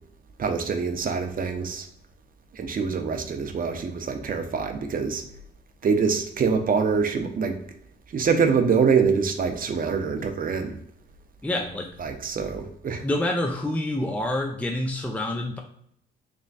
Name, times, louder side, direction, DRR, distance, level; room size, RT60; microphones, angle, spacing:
voice 1, 0.4-1.9 2.5-5.2 5.8-7.6 8.1-10.8 12.0-13.0, right 5 dB, 45° right, 6 dB, 0.7 m, -25 dB
voice 2, 11.4-11.9 13.0-15.6, left 1 dB, 5° left, 2 dB, 0.5 m, -27 dB
3.5 x 3.1 x 4.0 m, 0.70 s
cardioid pair, 90°, 20 cm